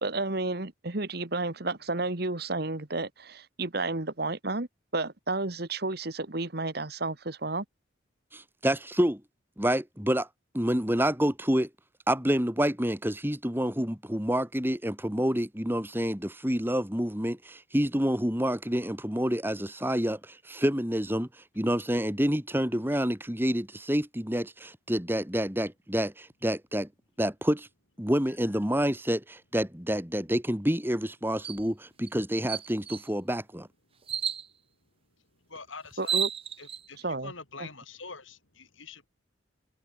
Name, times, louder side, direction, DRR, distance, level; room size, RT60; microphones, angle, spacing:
voice 1, 0.0-4.7 4.9-7.7 36.0-36.3 37.0-37.3 37.6-37.7, right 2 dB, 50° right, 1.7 m, -31 dB
voice 2, 8.3-9.2 9.6-10.3 10.5-11.7 12.1-21.3 21.5-26.9 27.2-27.7 28.0-33.7, equal, 10° right, 2.5 m, -28 dB
sound 1, 31.4-31.6 32.1-32.2 32.5-33.1 34.1-34.5 35.6-35.7 35.9-36.8, right 8 dB, 30° right, 1.5 m, -31 dB
voice 3, 35.5-36.2 36.6-39.1, left 4 dB, 80° left, 7.4 m, -45 dB
head